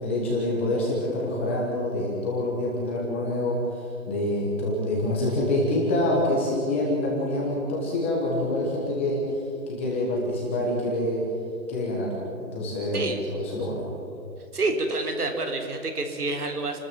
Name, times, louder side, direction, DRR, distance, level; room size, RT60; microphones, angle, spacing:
voice 1, 0.0-11.2 11.7-12.1 12.4-13.8, left 1 dB, 10° left, -4 dB, 1.2 m, -26 dB
voice 2, 12.9-13.2 14.5-16.8, right 2 dB, 65° right, 4 dB, 3.8 m, -28 dB
28.0 x 13.0 x 7.6 m, 2.7 s
hypercardioid pair, 165°, 49 cm